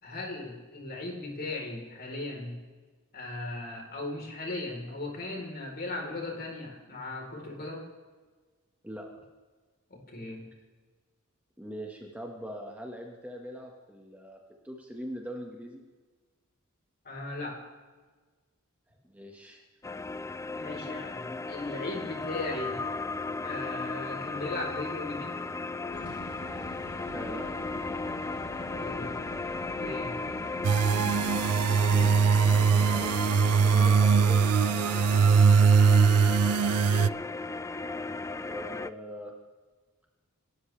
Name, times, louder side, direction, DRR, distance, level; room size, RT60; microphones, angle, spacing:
voice 1, 0.0-2.6 3.1-7.9 10.1-10.5 17.0-17.7 20.6-22.8 23.4-25.4 28.7-29.2 29.8-30.2 36.9-37.1, left 2 dB, 45° left, 0 dB, 4.1 m, -37 dB
voice 2, 11.6-14.4 14.6-15.8 19.0-19.6 27.1-27.4 31.8-32.3 32.7-34.4 37.1-37.2 38.5-39.3, equal, 5° right, 0 dB, 1.6 m, -42 dB
sound 1, 19.8-38.9, left 3 dB, 15° left, 0.3 m, -35 dB
sound 2, 25.9-33.1, left 1 dB, 90° left, 2.7 m, -44 dB
sound 3, 30.6-37.1, right 6 dB, 85° right, 0.4 m, -21 dB
26.5 x 13.0 x 3.4 m, 1.4 s
head